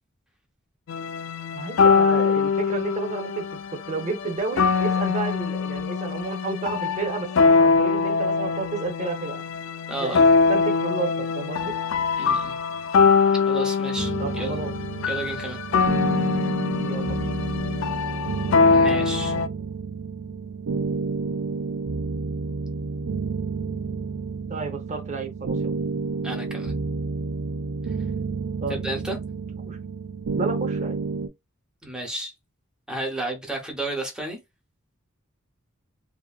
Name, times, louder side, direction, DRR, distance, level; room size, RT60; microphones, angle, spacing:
sound 1, 0.9-19.5, left 5 dB, 65° left, 0.3 m, -23 dB
voice 1, 1.5-3.6 3.9-9.4 10.0-10.2 10.5-11.1 11.3-11.7 14.2-14.7 16.8-17.3 18.7-18.9 19.3-19.6 24.5-25.7 28.6-28.8 29.6-29.8 30.3-31.0, right 4 dB, 35° right, 0.7 m, -31 dB
voice 2, 9.9-10.3 12.2-12.5 13.5-14.6 15.1-15.6 18.6-19.3 26.2-26.7 28.7-29.2 31.8-32.3 32.9-34.4, right 2 dB, 5° right, 0.7 m, -32 dB
sound 2, 14.0-31.3, right 4 dB, 80° right, 0.4 m, -30 dB
2.6 x 2.6 x 2.4 m
head